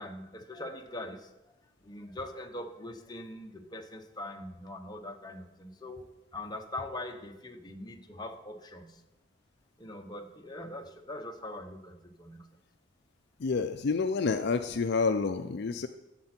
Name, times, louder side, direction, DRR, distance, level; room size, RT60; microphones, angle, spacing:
voice 1, 0.0-1.6 1.8-6.1 6.3-9.0 9.8-12.5, left 1 dB, 20° left, 4 dB, 0.9 m, -42 dB
voice 2, 13.4-15.9, left 4 dB, 55° left, 8 dB, 0.4 m, -28 dB
11.5 x 7.6 x 4.4 m, 0.99 s
head